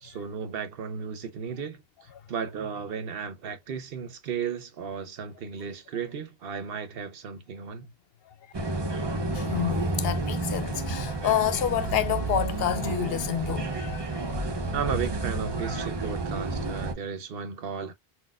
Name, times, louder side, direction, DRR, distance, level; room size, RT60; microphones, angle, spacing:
voice 1, 0.0-7.9 14.4-17.9, right 6 dB, 65° right, 0.9 m, -35 dB
sound 1, 8.5-16.9, right 2 dB, 30° right, 0.6 m, -30 dB
voice 2, 9.3-14.3, left 10 dB, 75° left, 0.8 m, -29 dB
3.9 x 2.2 x 2.4 m
omnidirectional pair, 1.0 m